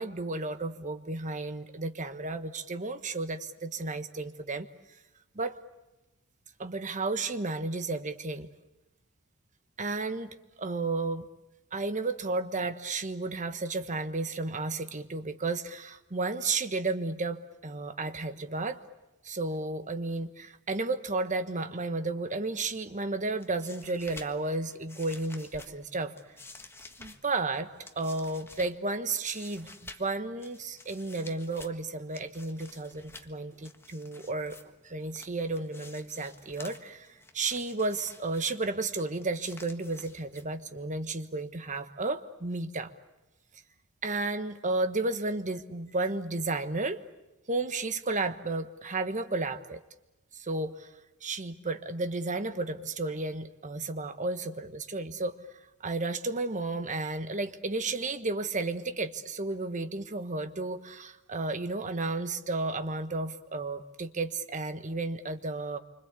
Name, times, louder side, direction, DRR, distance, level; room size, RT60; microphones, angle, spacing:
voice 1, 0.0-4.7 5.3-5.6 6.6-8.5 9.8-11.3 11.7-18.8 19.2-26.1 27.0-34.6 34.8-37.1 37.3-42.9 44.0-47.0 47.5-49.8 50.3-50.9 51.2-55.4 55.8-65.8, right 3 dB, 35° right, 9 dB, 1.3 m, -33 dB
sound 1, 23.3-40.9, left 2 dB, 10° left, 1.6 m, -52 dB
27.0 x 25.5 x 8.4 m, 0.99 s
head